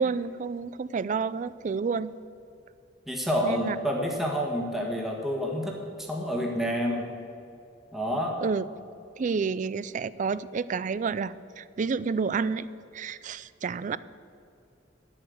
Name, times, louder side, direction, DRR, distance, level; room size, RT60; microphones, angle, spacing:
voice 1, 0.0-2.1 3.4-3.8 8.4-8.6 9.2-12.7 12.9-14.0, right 5 dB, 40° right, 17 dB, 0.3 m, -29 dB
voice 2, 3.1-7.1 7.9-8.4, equal, ahead, -1 dB, 1.6 m, -29 dB
10.5 x 8.8 x 7.9 m, 2.4 s
head